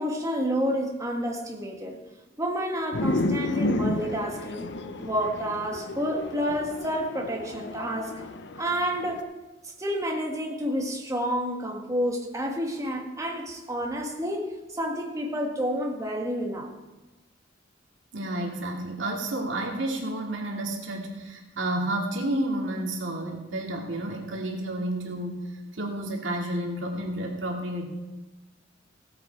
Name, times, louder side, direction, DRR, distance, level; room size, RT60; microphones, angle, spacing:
voice 1, 0.0-2.0 2.4-4.7 5.0-8.2 8.6-9.3 9.8-16.7, equal, 15° right, 1 dB, 1.7 m, -29 dB
sound 1, 2.9-9.2, left 2 dB, 65° left, 0.7 m, -32 dB
voice 2, 18.1-27.9, right 1 dB, 75° right, 0 dB, 2.3 m, -31 dB
16.5 x 7.9 x 4.6 m, 1.1 s
head